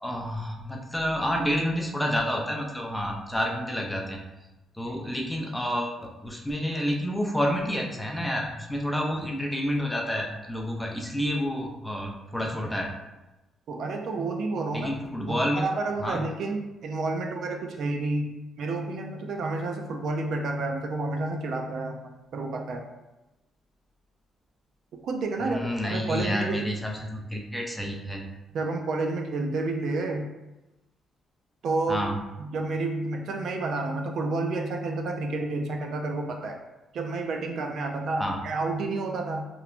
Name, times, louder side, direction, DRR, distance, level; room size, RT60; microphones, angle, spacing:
voice 1, 0.0-4.2 4.8-12.9 14.7-15.7 16.0-16.2 25.4-28.3 31.9-32.2 38.2-38.4, equal, 5° left, 0 dB, 0.4 m, -29 dB
voice 2, 13.7-14.9 15.3-18.3 18.6-22.0 22.3-22.9 25.0-26.6 28.5-30.3 31.6-32.0 32.4-36.6 36.9-39.5, right 3 dB, 70° right, 3 dB, 0.3 m, -30 dB
2.9 x 2.1 x 2.4 m, 1.0 s
cardioid pair, 90°, 0 cm